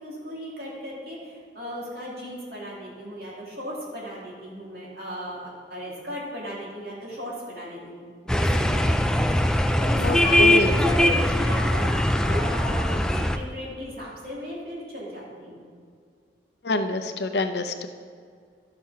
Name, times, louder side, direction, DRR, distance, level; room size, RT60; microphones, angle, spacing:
voice 1, 0.0-9.2 9.8-15.6, equal, 60° right, -5 dB, 2.9 m, -36 dB
sound 1, 8.3-13.4, left 1 dB, 5° left, 0.3 m, -21 dB
voice 2, 9.9-10.8 16.6-17.9, left 2 dB, 75° left, 8 dB, 0.7 m, -27 dB
12.0 x 6.0 x 5.7 m, 2.2 s
head